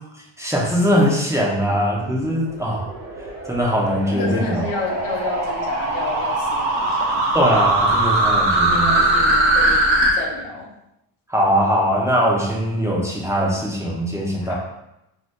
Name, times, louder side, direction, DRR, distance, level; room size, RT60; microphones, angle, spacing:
voice 1, 0.4-2.9 3.5-4.6 7.3-9.1 11.3-14.5, equal, 5° right, -4 dB, 0.8 m, -21 dB
sound 1, 2.1-10.1, right 1 dB, 90° right, 0.8 m, -21 dB
voice 2, 4.1-7.3 8.7-10.7 14.4-14.5, left 4 dB, 90° left, -1 dB, 0.8 m, -30 dB
2.7 x 2.2 x 3.6 m, 0.88 s
supercardioid pair, 65°, 48 cm